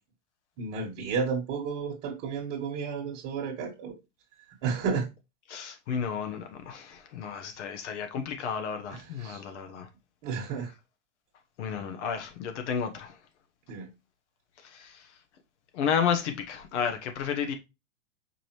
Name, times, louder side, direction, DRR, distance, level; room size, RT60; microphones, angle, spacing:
voice 1, 0.6-3.9 4.6-5.1 8.9-9.4 10.2-10.7 13.7-13.9, right 5 dB, 50° right, 1.4 m, -32 dB
voice 2, 5.5-9.9 11.6-13.2 14.6-15.1 15.7-17.5, left 7 dB, 70° left, 1.1 m, -32 dB
4.9 x 3.4 x 3.0 m
hypercardioid pair, 110°, 37 cm